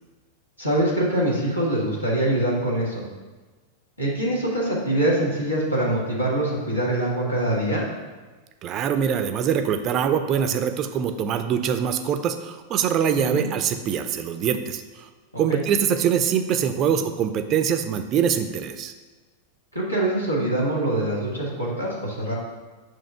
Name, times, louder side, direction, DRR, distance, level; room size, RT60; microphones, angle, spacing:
voice 1, 0.6-3.0 4.0-7.9 13.2-13.4 15.5-15.6 19.7-22.3, right 1 dB, 85° left, -5 dB, 1.8 m, -24 dB
voice 2, 8.6-15.1 15.4-18.9, right 8 dB, 35° right, 8 dB, 0.5 m, -23 dB
6.4 x 3.0 x 5.6 m, 1.3 s
figure-of-eight pair, 90°, 0 cm